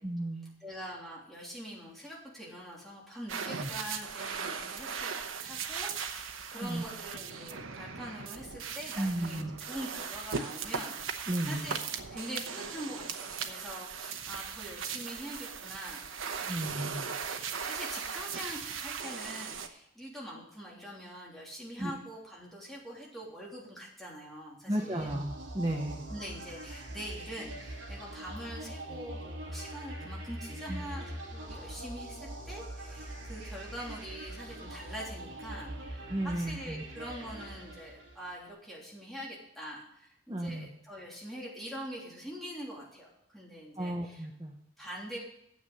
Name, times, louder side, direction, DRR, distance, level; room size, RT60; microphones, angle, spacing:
voice 1, 0.0-0.5 3.6-3.7 6.6-6.8 9.0-9.5 11.3-11.7 16.5-17.1 21.8-21.9 24.7-26.0 30.7-30.9 36.1-36.8 40.3-40.7 43.8-44.6, right 1 dB, 20° right, 1 dB, 0.9 m, -34 dB
voice 2, 0.6-5.1 5.4-11.8 12.1-16.7 17.2-25.2 26.1-44.3 44.8-45.2, equal, ahead, -5 dB, 3.1 m, -44 dB
sound 1, 3.3-19.7, right 6 dB, 85° right, 1.0 m, -38 dB
sound 2, 24.8-38.4, right 1 dB, 65° right, 2.2 m, -43 dB
9.5 x 7.5 x 6.7 m, 0.76 s
head